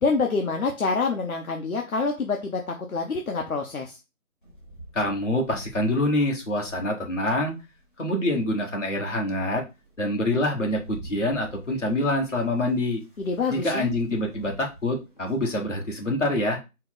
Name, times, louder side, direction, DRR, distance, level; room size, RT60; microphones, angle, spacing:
voice 1, 0.0-4.0 13.2-13.9, left 4 dB, 70° left, 2 dB, 0.8 m, -26 dB
Rain, 4.4-7.9 8.5-8.6 9.1-15.6, right 2 dB, 35° left, 1.0 m, -49 dB
voice 2, 4.9-7.6 8.0-9.6 10.0-13.0 13.5-16.6, left 1 dB, 55° left, 0 dB, 1.3 m, -26 dB
4.3 x 2.1 x 4.0 m, 0.26 s
figure-of-eight pair, 180°, 44 cm